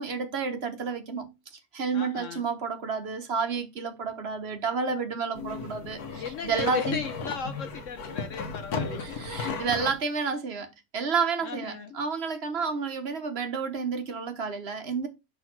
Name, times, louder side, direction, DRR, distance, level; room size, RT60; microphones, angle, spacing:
voice 1, 0.0-1.3 1.7-7.0 8.9-15.1, right 5 dB, 45° right, 1.2 m, -30 dB
voice 2, 1.9-2.5 6.1-9.7 11.4-12.0, left 6 dB, 65° left, 1.0 m, -37 dB
sound 1, 5.3-10.0, left 4 dB, 85° left, 1.5 m, -35 dB
6.3 x 3.5 x 5.9 m
omnidirectional pair, 1.6 m